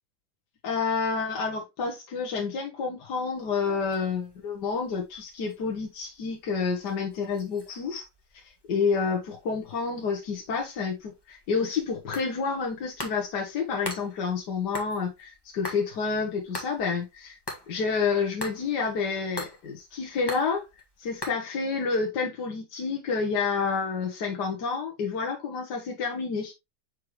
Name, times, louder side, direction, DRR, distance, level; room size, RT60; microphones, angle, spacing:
voice 1, 0.6-8.1 8.3-8.4 8.7-17.4 17.7-20.7 21.0-26.5, left 5 dB, 65° left, 1.7 m, -29 dB
sound 1, 3.3-21.3, left 1 dB, 15° left, 1.6 m, -44 dB
6.7 x 4.9 x 3.0 m
omnidirectional pair, 2.1 m